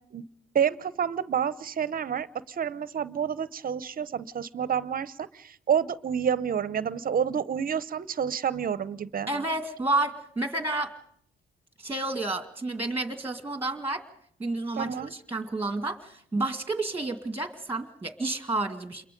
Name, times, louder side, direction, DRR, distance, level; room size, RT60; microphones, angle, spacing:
voice 1, 0.5-9.3 14.8-15.1, right 8 dB, 45° right, 16 dB, 0.8 m, -29 dB
voice 2, 9.3-10.9 11.8-14.0 14.4-19.0, right 2 dB, 10° right, 8 dB, 2.0 m, -30 dB
28.0 x 22.5 x 5.3 m, 0.65 s
cardioid pair, 90°, 20 cm